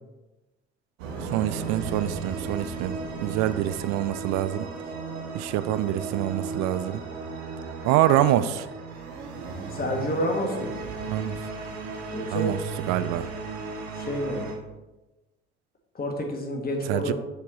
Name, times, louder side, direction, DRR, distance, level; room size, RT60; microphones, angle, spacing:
sound 1, 1.0-14.5, right 4 dB, 70° right, 1.2 m, -35 dB
voice 1, 1.3-4.7 5.3-7.0 7.8-8.7 11.1-11.4 12.3-12.6 12.9-13.3 16.9-17.1, right 13 dB, 55° right, 0.4 m, -25 dB
voice 2, 9.7-10.7 12.1-12.5 13.9-14.5 15.9-17.1, left 1 dB, 25° left, 1.6 m, -29 dB
6.7 x 4.7 x 4.0 m
figure-of-eight pair, 55°, 33 cm